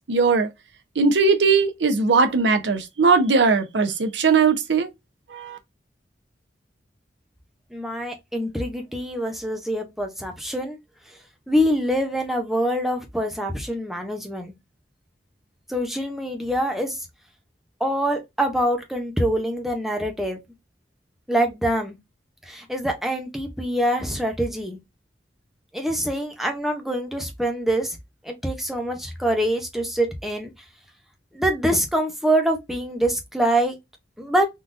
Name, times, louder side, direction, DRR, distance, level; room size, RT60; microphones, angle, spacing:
voice 1, 0.1-0.5 1.0-4.9 5.3-5.6, right 4 dB, 85° right, 0.6 m, -19 dB
voice 2, 7.7-10.8 11.1-11.2 11.5-14.5 15.7-17.0 17.8-20.4 21.3-22.0 22.5-24.8 25.7-28.0 28.2-30.5 31.3-33.8 34.2-34.5, right 1 dB, ahead, 0.6 m, -25 dB
3.8 x 2.3 x 2.5 m
head